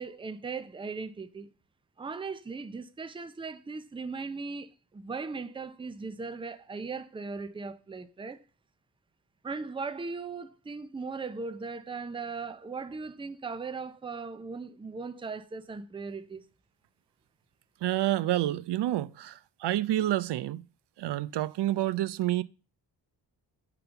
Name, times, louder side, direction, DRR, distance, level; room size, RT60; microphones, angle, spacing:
voice 1, 0.0-1.5 2.0-8.4 9.4-16.4, right 4 dB, 15° right, 0.5 m, -38 dB
voice 2, 17.8-20.6 21.0-22.4, right 14 dB, 80° right, 0.5 m, -28 dB
9.1 x 3.9 x 6.9 m
wide cardioid pair, 165°, 41 cm